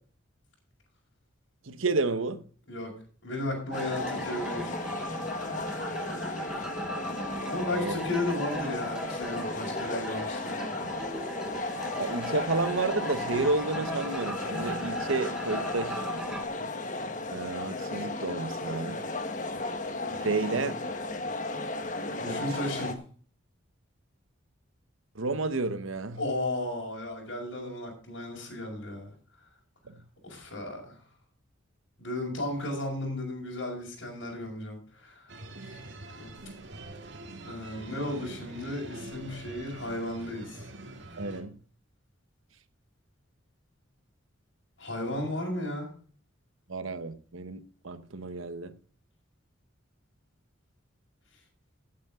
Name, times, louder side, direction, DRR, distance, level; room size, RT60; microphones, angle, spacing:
voice 1, 1.6-2.5 7.7-8.0 12.0-16.0 17.3-19.1 20.1-20.8 22.2-22.6 25.1-26.2 29.9-30.0 41.2-41.6 46.7-48.8, right 3 dB, 80° right, 1.1 m, -31 dB
voice 2, 3.2-4.8 7.5-10.7 22.1-23.0 26.2-29.1 30.2-31.0 32.0-35.3 35.6-35.8 36.2-36.3 37.4-40.6 44.8-45.9, left 1 dB, 65° left, 5.4 m, -34 dB
sound 1, 3.7-22.9, left 2 dB, 40° left, 1.4 m, -35 dB
sound 2, 3.7-16.4, right 1 dB, 5° right, 1.1 m, -39 dB
sound 3, 35.3-41.4, right 2 dB, 60° right, 2.1 m, -44 dB
15.0 x 8.6 x 3.7 m
head